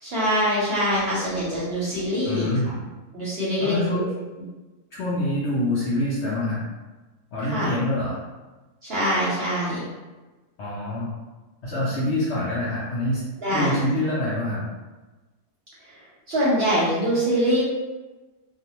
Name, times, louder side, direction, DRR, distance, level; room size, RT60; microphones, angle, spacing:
voice 1, 0.0-2.5 3.1-4.1 7.5-7.7 8.8-9.8 13.4-13.8 16.3-17.6, equal, 55° right, -8 dB, 0.7 m, -23 dB
voice 2, 2.2-2.8 3.6-4.0 4.9-6.6 7.3-8.2 10.6-11.1 11.6-13.2 13.5-14.6, left 1 dB, 65° left, -8 dB, 0.7 m, -25 dB
2.5 x 2.1 x 2.9 m, 1.2 s
omnidirectional pair, 1.6 m